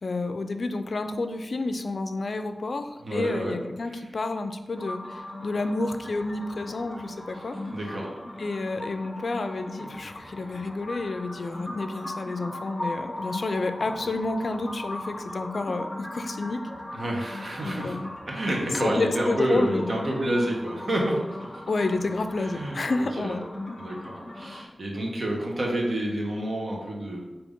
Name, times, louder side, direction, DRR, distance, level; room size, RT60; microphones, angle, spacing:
voice 1, 0.0-7.6 8.4-16.6 17.6-18.1 18.8-19.9 21.7-23.4, left 3 dB, 65° left, 8 dB, 0.3 m, -30 dB
voice 2, 3.0-3.6 7.7-8.1 16.9-18.0 18.2-21.5 22.4-23.3 23.8-27.2, right 1 dB, 60° right, -1 dB, 1.1 m, -29 dB
sound 1, 4.7-24.7, left 1 dB, 15° left, 0.9 m, -39 dB
5.2 x 2.9 x 3.5 m, 1.1 s
wide cardioid pair, 65°, 0 cm